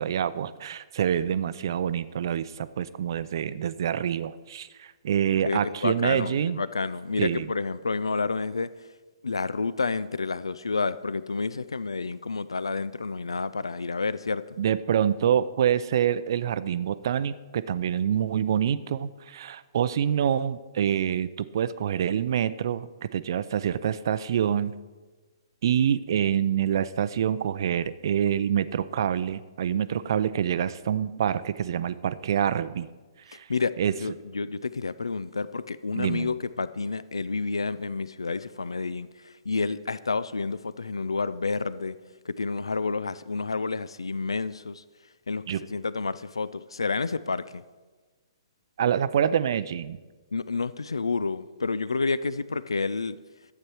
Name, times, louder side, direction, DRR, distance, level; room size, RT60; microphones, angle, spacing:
voice 1, 0.0-6.6 7.2-7.5 14.6-24.7 25.6-32.9 33.3-33.5 33.8-33.9 36.0-36.3 45.5-45.6 48.8-50.0, right 9 dB, 55° right, 15 dB, 0.4 m, -26 dB
voice 2, 5.4-8.7 9.2-14.6 33.5-33.7 34.0-42.0 42.3-44.8 45.3-45.4 45.7-47.6 50.3-53.2, left 4 dB, 85° left, 16 dB, 0.4 m, -29 dB
11.5 x 8.5 x 4.6 m, 1.3 s
figure-of-eight pair, 125°, 3 cm